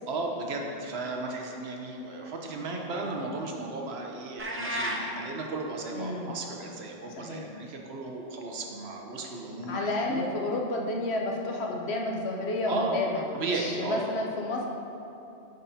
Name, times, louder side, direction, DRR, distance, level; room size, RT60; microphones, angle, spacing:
voice 1, 0.1-10.3 12.7-13.0 13.3-14.1, right 3 dB, 75° right, 1 dB, 1.1 m, -35 dB
sound 1, 4.4-5.0, equal, 15° right, 0.5 m, -31 dB
voice 2, 5.9-6.3 7.2-7.4 9.7-14.7, left 2 dB, 75° left, 0 dB, 1.1 m, -31 dB
11.5 x 5.2 x 2.8 m, 2.8 s
omnidirectional pair, 1.1 m